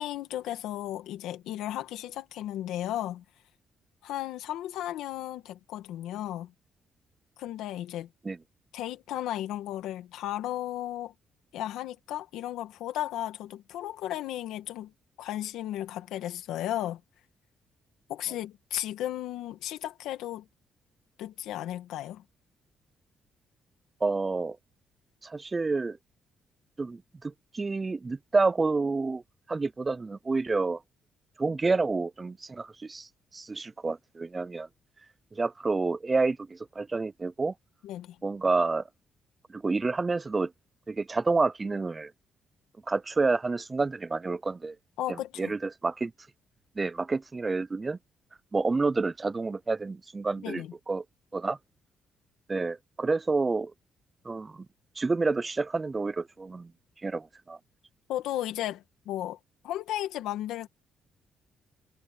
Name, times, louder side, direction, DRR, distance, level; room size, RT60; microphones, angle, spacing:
voice 1, 0.0-3.2 4.0-6.5 7.4-8.1 8.7-11.1 11.5-14.9 15.2-17.0 18.1-20.5 21.2-22.2 37.8-38.2 45.0-45.5 50.4-50.7 58.1-59.4 59.6-60.7, left 13 dB, 90° left, 2.0 m, -34 dB
voice 2, 24.0-24.6 25.2-26.0 26.8-29.2 29.5-30.8 31.4-34.7 35.3-37.5 38.2-38.8 39.5-40.5 40.9-42.1 42.9-44.8 45.4-46.1 46.8-48.0 48.5-51.0 51.3-51.6 52.5-53.7 54.3-54.7 55.0-56.7 57.0-57.6, right 3 dB, 25° right, 0.5 m, -29 dB
cardioid pair, 90°, 0 cm